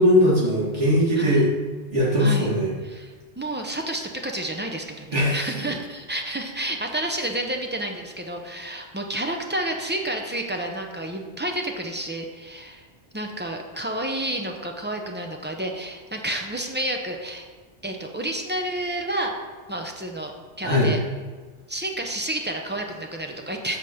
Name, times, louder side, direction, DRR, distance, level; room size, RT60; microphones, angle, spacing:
voice 1, 0.0-1.5 1.9-2.7 5.1-5.5 20.6-20.9, equal, 80° right, -7 dB, 2.4 m, -19 dB
voice 2, 2.2-2.5 2.8-3.1 3.4-12.8 13.1-17.5 17.8-19.3 19.7-20.3 20.6-21.0 21.7-23.8, right 1 dB, 10° right, 2 dB, 0.6 m, -30 dB
8.1 x 4.1 x 6.5 m, 1.4 s
omnidirectional pair, 1.2 m